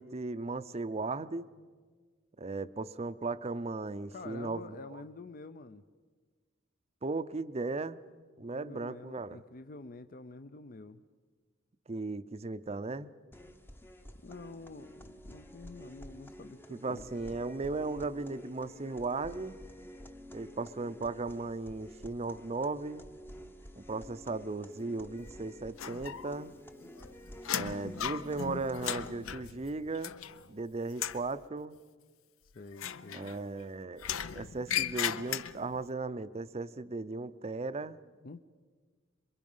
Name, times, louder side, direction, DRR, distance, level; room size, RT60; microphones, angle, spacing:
voice 1, 0.0-1.5 2.4-4.7 7.0-8.0 8.4-9.4 11.9-13.1 16.7-19.6 20.3-23.0 23.8-26.5 27.5-30.1 30.5-31.8 33.1-34.1 34.3-38.0, right 3 dB, 30° right, 14 dB, 0.6 m, -36 dB
voice 2, 4.1-5.8 8.5-11.0 14.1-17.1 32.4-33.3 38.2-38.4, left 3 dB, 45° left, 11 dB, 0.5 m, -48 dB
sound 1, 13.3-29.3, equal, 10° left, 0.7 m, -50 dB
sound 2, 25.8-26.5 26.8-30.6 30.9-31.3 32.7-33.6 34.0-35.8, left 9 dB, 85° left, 0.6 m, -37 dB
27.0 x 23.0 x 5.5 m, 1.5 s
head